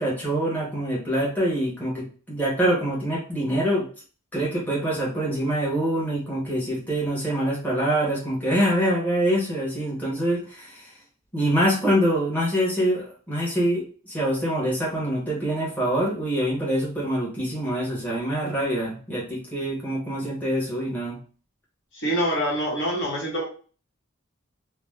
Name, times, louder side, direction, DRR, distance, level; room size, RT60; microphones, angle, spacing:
voice 1, 0.0-3.9 4.3-10.9 11.3-21.2, right 1 dB, 10° left, -6 dB, 1.0 m, -25 dB
voice 2, 21.9-23.4, equal, 60° left, -4 dB, 1.1 m, -25 dB
2.5 x 2.1 x 3.3 m, 0.38 s
head